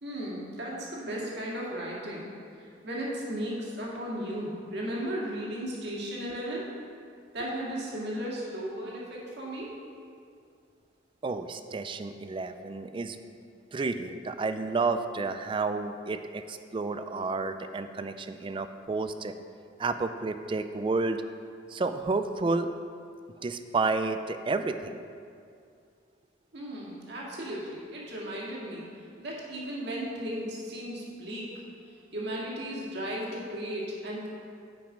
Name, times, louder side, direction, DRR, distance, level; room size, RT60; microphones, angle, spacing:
voice 1, 0.0-2.3 2.8-6.7 7.3-9.7 26.5-28.9 29.2-31.5 32.1-34.3, equal, 60° right, -4 dB, 1.9 m, -35 dB
voice 2, 11.2-13.2 13.7-19.3 19.8-21.2 21.7-22.7 23.4-25.0, right 3 dB, 25° right, 9 dB, 0.3 m, -31 dB
9.0 x 5.3 x 5.0 m, 2.4 s
head